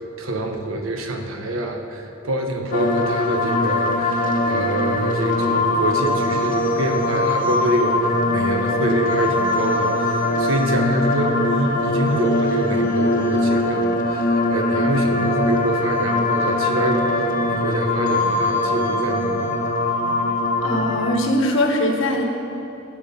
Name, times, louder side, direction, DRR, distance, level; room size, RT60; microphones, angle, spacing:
voice 1, 0.2-17.0 17.5-19.5, right 1 dB, 80° right, 3 dB, 1.2 m, -25 dB
sound 1, 2.7-21.2, left 2 dB, 40° left, 0.8 m, -21 dB
voice 2, 20.6-22.2, left 1 dB, 65° left, 2 dB, 1.5 m, -21 dB
15.0 x 5.6 x 6.9 m, 2.8 s
head